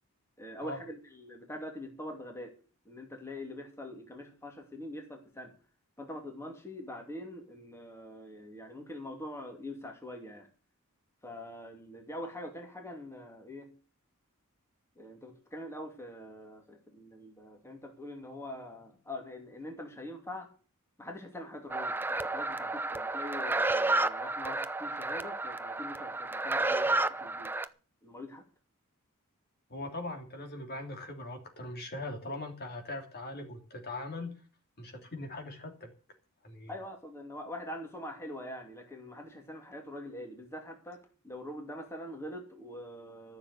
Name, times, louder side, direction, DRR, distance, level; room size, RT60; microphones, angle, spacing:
voice 1, 0.4-2.5 2.8-5.5 6.0-10.5 11.2-13.7 15.0-20.5 21.0-27.5 28.0-28.4 36.7-43.4, left 1 dB, 10° left, 3 dB, 2.6 m, -44 dB
sound 1, 21.7-27.6, right 2 dB, 10° right, 0.5 m, -31 dB
voice 2, 29.7-34.3 34.8-35.9 36.4-36.7, left 2 dB, 45° left, 4 dB, 2.9 m, -40 dB
14.0 x 7.1 x 8.1 m, 0.38 s
head